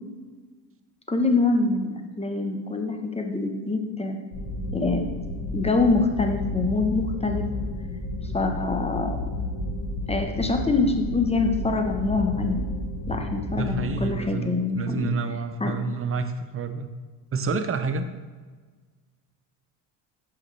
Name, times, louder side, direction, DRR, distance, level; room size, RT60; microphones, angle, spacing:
voice 1, 1.1-4.2 4.7-5.0 5.5-7.4 8.3-9.2 10.1-12.7 13.1-15.1 15.6-15.7, left 3 dB, 15° left, 5 dB, 1.0 m, -25 dB
sound 1, 4.3-14.1, left 1 dB, 45° left, 1.7 m, -31 dB
voice 2, 13.5-16.9 17.3-18.1, right 4 dB, 30° right, 9 dB, 0.7 m, -29 dB
6.1 x 5.9 x 3.3 m, 1.4 s
supercardioid pair, 70°, 44 cm